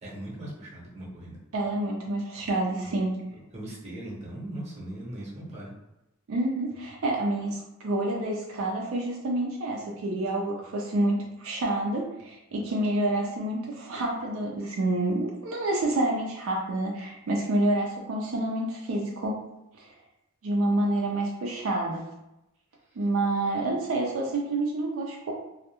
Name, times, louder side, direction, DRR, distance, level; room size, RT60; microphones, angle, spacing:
voice 1, 0.0-1.4 2.8-3.0 3.3-5.7 22.8-23.0, right 1 dB, 35° right, -5 dB, 0.8 m, -39 dB
voice 2, 1.5-3.2 6.3-19.4 19.8-19.9 20.4-22.0 23.0-25.3, right 1 dB, 75° right, -1 dB, 0.4 m, -28 dB
2.2 x 2.0 x 2.8 m, 0.89 s
head